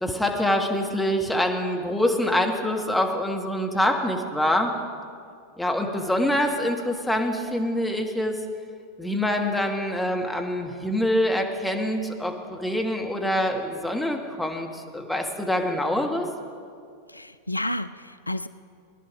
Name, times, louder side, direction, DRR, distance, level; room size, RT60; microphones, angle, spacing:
voice 1, 0.0-4.7 5.6-8.4 9.0-16.3, left 1 dB, 5° left, 2 dB, 1.4 m, -25 dB
voice 2, 17.1-18.5, left 1 dB, 85° left, 13 dB, 0.3 m, -31 dB
18.0 x 11.0 x 5.2 m, 2.3 s
figure-of-eight pair, 90°, 0 cm